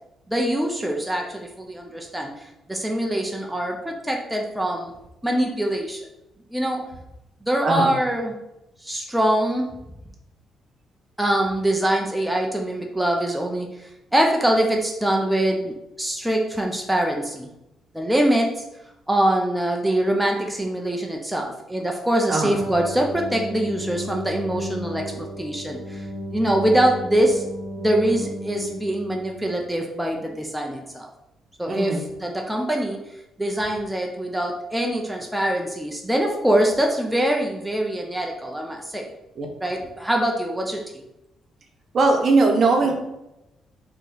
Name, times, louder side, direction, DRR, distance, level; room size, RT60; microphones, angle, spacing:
voice 1, 0.3-4.9 5.2-6.0 6.5-6.9 7.4-8.4 8.8-9.7 11.2-17.5 17.9-18.5 19.1-26.0 26.3-27.4 27.8-31.1 31.6-31.9 32.2-33.0 33.4-39.1 39.6-41.0, right 1 dB, 5° right, 1 dB, 0.6 m, -23 dB
voice 2, 7.6-8.0 22.3-22.6 31.7-32.1 39.3-39.5 41.9-42.9, right 3 dB, 50° right, 2 dB, 0.9 m, -20 dB
sound 1, 22.5-29.6, left 1 dB, 90° left, 0.9 m, -34 dB
4.3 x 3.1 x 3.8 m, 0.90 s
cardioid pair, 90°, 0 cm